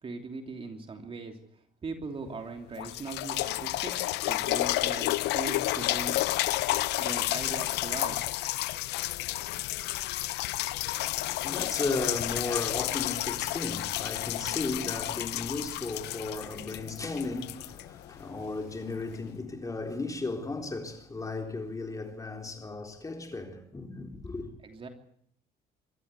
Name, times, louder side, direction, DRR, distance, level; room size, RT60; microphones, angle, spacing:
voice 1, 0.0-1.4 1.8-3.9 4.3-6.3 7.0-8.2 24.6-24.9, right 3 dB, 35° right, 3.1 m, -39 dB
sound 1, 2.3-2.4 2.8-18.5 19.1-19.2, left 17 dB, 85° left, 0.7 m, -31 dB
voice 2, 10.6-24.5, left 3 dB, 20° left, 4.0 m, -35 dB
25.0 x 13.5 x 8.4 m
cardioid pair, 110°, 17 cm